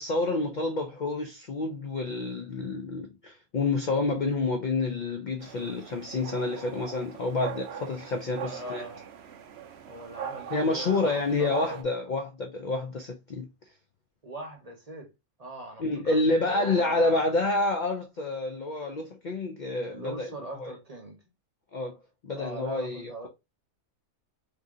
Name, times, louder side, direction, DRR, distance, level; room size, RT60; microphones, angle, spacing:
voice 1, 0.0-8.8 10.5-13.5 15.8-20.3 20.6-20.7 21.7-22.0 22.2-23.3, left 2 dB, 70° left, 0.4 m, -28 dB
sound 1, 5.4-11.8, right 8 dB, 65° right, 0.7 m, -40 dB
voice 2, 8.4-9.1 9.8-11.8 14.2-15.1 15.4-17.3 19.9-21.2 22.3-23.3, right 1 dB, 35° right, 0.8 m, -41 dB
2.8 x 2.7 x 3.6 m
omnidirectional pair, 1.5 m